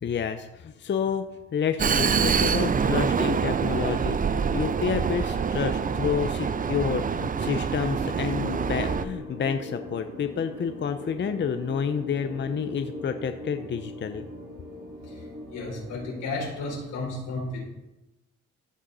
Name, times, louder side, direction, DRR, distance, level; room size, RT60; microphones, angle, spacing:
voice 1, 0.0-14.2, left 7 dB, 40° left, 8 dB, 0.7 m, -29 dB
Vehicle, 1.8-9.0, right 6 dB, 30° right, 0.5 m, -25 dB
sound 1, 7.9-16.8, left 1 dB, 80° right, 3.7 m, -41 dB
voice 2, 15.5-17.6, left 2 dB, 90° left, -3 dB, 4.3 m, -33 dB
14.5 x 6.3 x 4.2 m, 1.0 s
cardioid pair, 90°, 30 cm